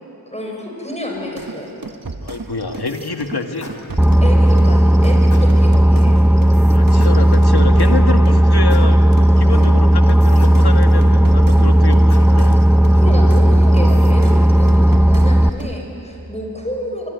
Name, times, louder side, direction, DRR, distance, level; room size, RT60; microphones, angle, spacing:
voice 1, 0.3-1.8 4.2-6.4 9.5-9.7 13.0-17.1, equal, 15° left, 0 dB, 6.4 m, -29 dB
sound 1, 1.4-8.4 8.7-15.8, right 3 dB, 55° right, 1.5 m, -33 dB
voice 2, 2.2-3.7 6.6-12.6, left 4 dB, 75° left, 5 dB, 1.9 m, -26 dB
sound 2, 2.8-3.1 3.6-4.8 5.3-6.2 7.0-8.2 8.7-9.8 10.4-11.5 12.1-13.2, left 2 dB, 45° left, 3.4 m, -38 dB
Boat Water vehicle, 4.0-15.5, equal, 5° right, 0.6 m, -12 dB
25.5 x 24.5 x 9.6 m, 2.9 s
wide cardioid pair, 50°, 39 cm